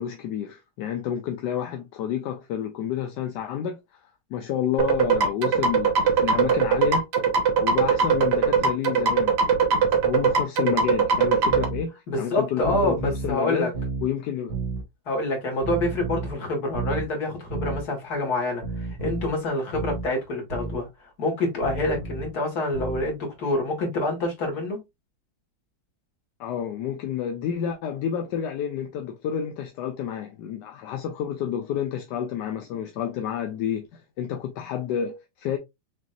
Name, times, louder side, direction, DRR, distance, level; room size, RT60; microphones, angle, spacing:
voice 1, 0.0-4.0 4.3-7.1 7.6-9.4 9.7-13.7 14.0-14.5 26.4-35.6, left 9 dB, 75° left, 1.2 m, -29 dB
sound 1, 4.8-11.6, right 6 dB, 65° right, 1.5 m, -21 dB
sound 2, 11.5-11.8 12.6-13.3 13.7-14.1 14.5-14.8 15.6-16.3 16.7-17.1 17.5-17.8 18.6-19.3 19.7-20.1 20.5-20.8 21.6-22.3 22.7-23.1, right 4 dB, 40° right, 1.7 m, -31 dB
voice 2, 12.1-13.7 15.1-20.9 21.2-24.8, left 1 dB, 60° left, 2.2 m, -27 dB
6.1 x 2.7 x 2.4 m
omnidirectional pair, 2.0 m